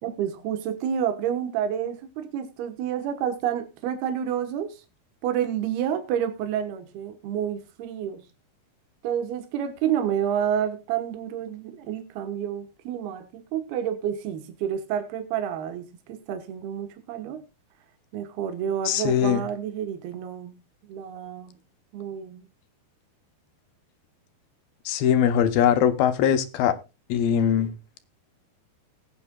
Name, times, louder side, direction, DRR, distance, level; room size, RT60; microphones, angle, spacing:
voice 1, 0.0-4.8 5.2-8.2 9.0-17.4 18.1-20.5 20.9-21.6 21.9-22.4, right 9 dB, 80° right, 3.1 m, -29 dB
voice 2, 18.9-19.4 24.9-26.7 27.1-27.7, left 9 dB, 75° left, 2.7 m, -21 dB
19.5 x 9.0 x 2.2 m
omnidirectional pair, 4.4 m